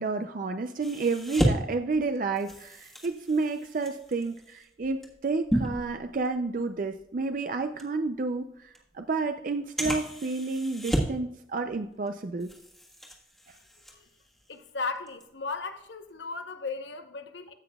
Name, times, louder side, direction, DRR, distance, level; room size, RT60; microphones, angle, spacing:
voice 1, 0.0-12.5, right 3 dB, 45° right, 0.4 m, -30 dB
sound 1, 0.8-6.6 7.0-7.2 7.8-7.9 8.7-8.8 9.8-11.3 11.6-12.1 12.4-14.6 15.0-15.2, right 1 dB, ahead, 1.3 m, -33 dB
voice 2, 14.5-17.5, left 4 dB, 75° left, 0.9 m, -36 dB
15.5 x 5.9 x 2.3 m
head